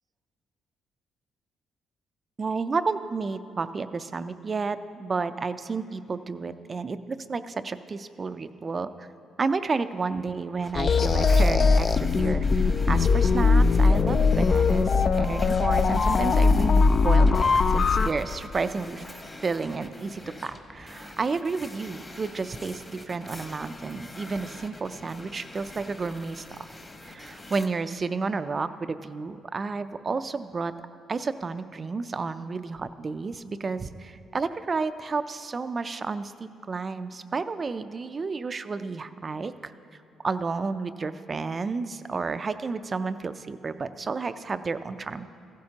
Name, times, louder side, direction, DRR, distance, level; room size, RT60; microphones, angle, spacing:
voice 1, 2.4-9.1 9.4-19.1 19.4-26.7 27.0-30.7 31.1-39.7 40.2-45.3, right 4 dB, 35° right, 11 dB, 0.4 m, -31 dB
sound 1, 10.6-27.7, left 2 dB, 20° left, 1.2 m, -44 dB
sound 2, 10.7-18.1, left 4 dB, 45° left, 0.4 m, -20 dB
15.0 x 12.0 x 2.9 m, 2.4 s
cardioid pair, 90°, 0 cm